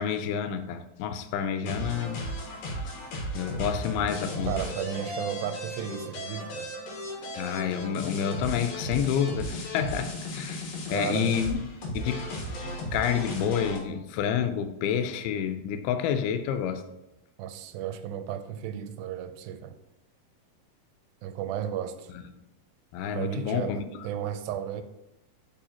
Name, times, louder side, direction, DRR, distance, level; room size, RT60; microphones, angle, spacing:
voice 1, 0.0-2.2 3.3-4.5 7.4-11.6 11.9-12.1 12.6-16.8 22.9-23.8, left 8 dB, 90° left, 2.5 m, -29 dB
sound 1, 1.6-13.8, equal, 70° left, 3.1 m, -35 dB
voice 2, 4.5-6.7 10.9-11.4 17.4-19.8 21.2-22.1 23.1-24.8, right 10 dB, 85° right, 2.3 m, -34 dB
9.9 x 4.8 x 2.9 m
omnidirectional pair, 4.3 m